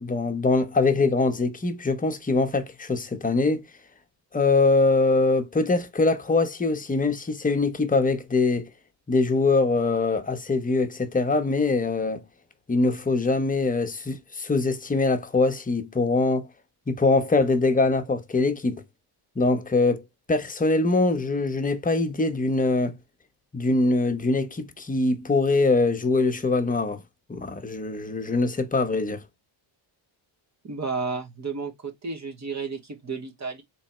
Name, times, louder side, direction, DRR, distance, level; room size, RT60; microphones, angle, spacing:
voice 1, 0.0-3.7 4.3-8.7 9.1-12.2 12.7-16.5 16.9-18.8 19.4-23.0 23.5-27.0 27.3-29.2, left 3 dB, 15° left, 0.8 m, -23 dB
voice 2, 30.6-33.6, right 4 dB, 35° right, 1.1 m, -32 dB
3.4 x 3.1 x 4.1 m
cardioid pair, 95°, 49 cm